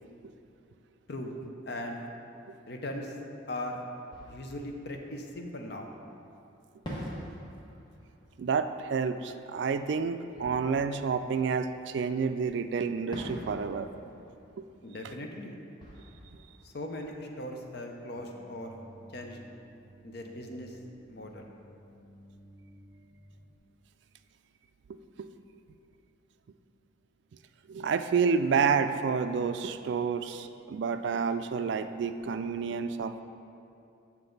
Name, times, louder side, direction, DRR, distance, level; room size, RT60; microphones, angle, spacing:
voice 1, 1.7-2.0 2.7-3.2 3.5-3.8 4.3-5.9 14.8-15.6 16.6-18.8 19.1-19.4 20.0-20.8 21.1-21.5, left 1 dB, 55° left, 2 dB, 0.7 m, -39 dB
Fireworks, 4.1-6.0 6.8-12.2 13.1-17.8, equal, 20° left, 1.2 m, -46 dB
voice 2, 8.4-13.9 14.6-14.7 16.3-16.4 24.9-25.3 27.7-33.2, right 5 dB, 60° right, 10 dB, 0.3 m, -29 dB
sound 1, 18.1-23.6, equal, ahead, 1.0 m, -55 dB
7.7 x 5.9 x 3.9 m, 2.6 s
head